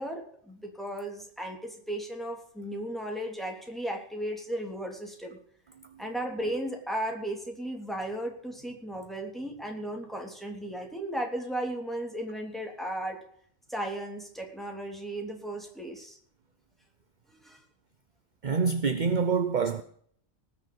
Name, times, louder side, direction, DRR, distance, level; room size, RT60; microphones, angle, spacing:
voice 1, 0.0-5.4 6.0-13.2 13.7-16.2 17.3-17.6, right 1 dB, ahead, 3.3 m, -35 dB
voice 2, 18.4-19.8, right 5 dB, 40° right, 0.9 m, -26 dB
19.0 x 6.9 x 8.8 m
omnidirectional pair, 1.3 m